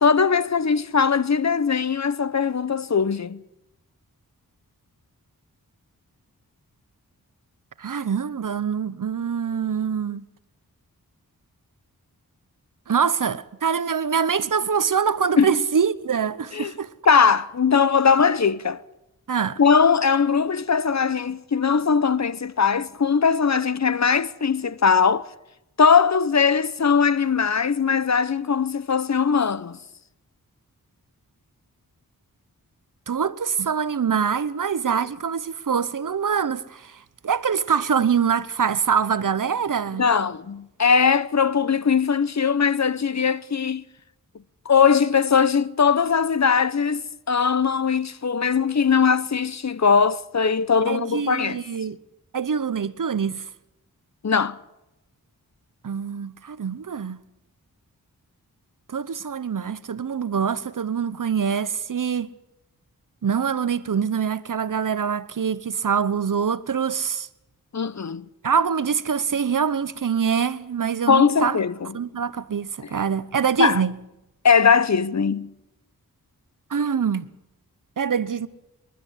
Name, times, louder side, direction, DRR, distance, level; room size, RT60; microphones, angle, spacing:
voice 1, 0.0-3.4 15.4-15.6 16.5-16.7 17.1-18.8 19.6-25.3 25.8-29.8 40.0-43.8 44.7-47.0 47.3-51.6 54.2-54.6 67.7-68.2 71.1-71.9 73.6-73.8 74.4-75.5, left 6 dB, 50° left, 0.9 m, -20 dB
voice 2, 7.8-10.2 12.9-16.9 19.3-19.6 33.1-40.1 50.9-52.0 52.3-53.4 55.8-57.2 58.9-62.3 63.2-67.3 68.4-71.6 71.9-74.0 76.7-77.3 78.0-78.5, right 7 dB, 60° right, 1.0 m, -24 dB
25.0 x 12.5 x 9.9 m
cardioid pair, 45°, 36 cm